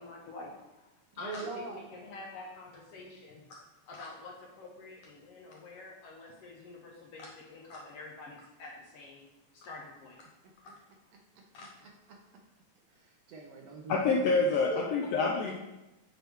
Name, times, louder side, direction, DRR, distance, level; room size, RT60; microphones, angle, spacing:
voice 1, 0.0-3.4 3.9-9.3 9.5-10.2, left 3 dB, 70° left, -2 dB, 1.5 m, -47 dB
voice 2, 1.2-1.8 11.6-12.2 12.9-14.4 14.7-14.8, right 3 dB, 70° right, 1 dB, 1.7 m, -42 dB
voice 3, 13.9-15.5, left 3 dB, 90° left, 0 dB, 1.4 m, -27 dB
7.8 x 3.3 x 4.5 m, 1.0 s
omnidirectional pair, 3.4 m